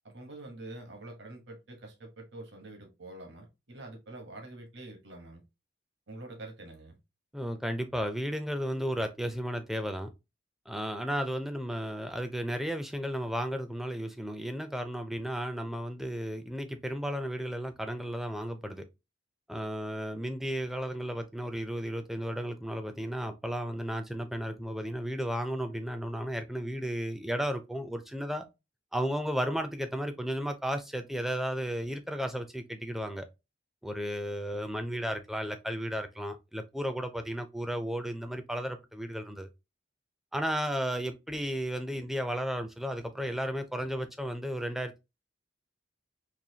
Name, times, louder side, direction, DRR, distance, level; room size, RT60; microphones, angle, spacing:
voice 1, 0.0-5.4 6.1-7.0, right 2 dB, 60° right, 1.1 m, -46 dB
voice 2, 7.3-10.1 10.7-18.8 19.5-28.4 28.9-33.3 33.8-39.5 40.3-45.0, equal, ahead, 0.4 m, -34 dB
4.1 x 2.6 x 2.7 m
head